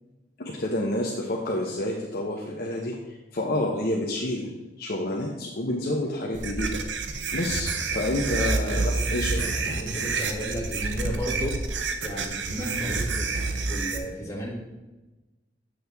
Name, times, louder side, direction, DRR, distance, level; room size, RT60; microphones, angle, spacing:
voice 1, 0.4-6.8 7.3-9.5, left 1 dB, 55° left, -1 dB, 0.8 m, -29 dB
sound 1, 6.3-14.0, right 3 dB, 90° right, 0.8 m, -28 dB
voice 2, 8.4-11.6 12.0-14.5, equal, 15° left, -6 dB, 2.3 m, -34 dB
8.0 x 6.3 x 3.5 m, 1.1 s
head